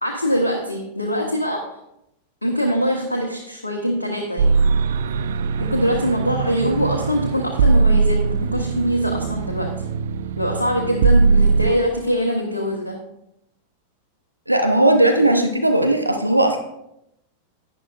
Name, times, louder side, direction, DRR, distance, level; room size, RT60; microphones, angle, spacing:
voice 1, 0.0-1.6 2.4-4.6 5.6-9.7 10.4-13.0 15.3-15.5, equal, 80° left, 1 dB, 1.0 m, -23 dB
sound 1, 4.4-11.7, right 4 dB, 60° right, 0.4 m, -20 dB
voice 2, 14.5-16.6, right 1 dB, 85° right, 5 dB, 0.8 m, -17 dB
11.0 x 9.9 x 2.4 m, 0.82 s
figure-of-eight pair, 90°, 0 cm